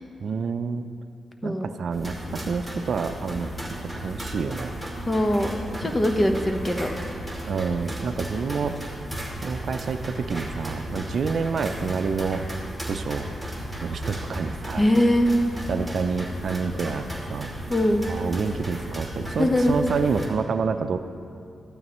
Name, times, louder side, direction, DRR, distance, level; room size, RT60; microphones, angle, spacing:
voice 1, 0.2-0.9 1.4-3.5 4.0-4.7 7.4-8.8 9.4-12.4 12.9-13.3 13.8-14.9 15.7-17.0 17.3-17.5 18.1-21.0, right 5 dB, 70° right, 9 dB, 0.5 m, -28 dB
sound 1, 1.9-20.3, right 1 dB, ahead, 2.7 m, -35 dB
voice 2, 5.1-6.9 14.8-15.3 17.7-18.0 19.4-19.7, left 1 dB, 25° left, 4 dB, 1.1 m, -22 dB
14.5 x 12.5 x 3.1 m, 2.6 s
cardioid pair, 70°, 0 cm